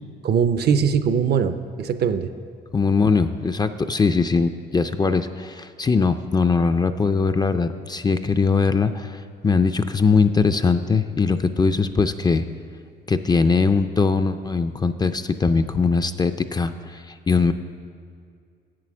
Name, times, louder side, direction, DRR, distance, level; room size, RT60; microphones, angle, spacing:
voice 1, 0.2-2.3, right 7 dB, 55° right, 11 dB, 0.5 m, -21 dB
voice 2, 2.7-12.4 13.1-17.5, left 4 dB, 20° left, 9 dB, 0.4 m, -21 dB
8.1 x 7.6 x 6.1 m, 2.3 s
cardioid pair, 90°, 20 cm